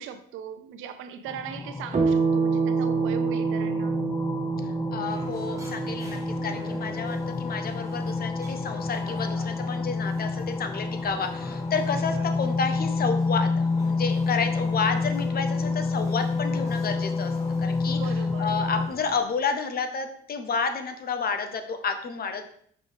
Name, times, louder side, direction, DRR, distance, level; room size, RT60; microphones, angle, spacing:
voice 1, 0.0-4.0 17.9-18.6, right 8 dB, 90° right, 0.6 m, -39 dB
sound 1, 1.3-18.9, left 4 dB, 10° left, 0.3 m, -29 dB
sound 2, 1.9-10.8, right 5 dB, 35° right, 1.4 m, -29 dB
voice 2, 4.9-17.3 17.6-18.0 18.4-22.4, left 5 dB, 50° left, 0.9 m, -30 dB
sound 3, 5.1-19.2, right 1 dB, 15° right, 1.4 m, -47 dB
5.4 x 5.0 x 3.5 m
cardioid pair, 90°, 20 cm